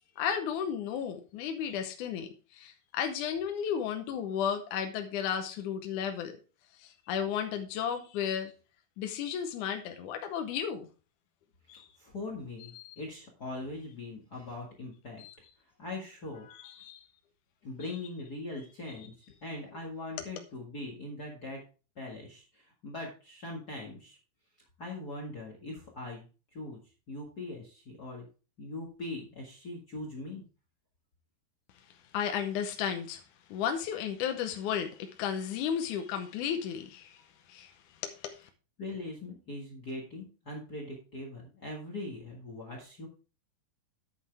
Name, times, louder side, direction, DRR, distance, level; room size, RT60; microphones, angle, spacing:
voice 1, 0.2-6.4 6.7-8.5 9.0-10.9 11.7-11.9 12.7-13.0 15.2-15.3 16.5-17.1 17.8-17.9 32.1-33.2 33.5-37.2 37.5-37.7 38.0-38.5, left 8 dB, 75° left, 1.9 m, -34 dB
voice 2, 11.7-15.2 15.8-16.5 17.6-19.1 19.4-21.6 21.9-24.2 24.8-26.2 26.5-26.8 27.1-28.3 28.6-30.4 38.8-43.1, left 2 dB, 40° left, 1.4 m, -41 dB
9.4 x 8.5 x 3.4 m
omnidirectional pair, 4.4 m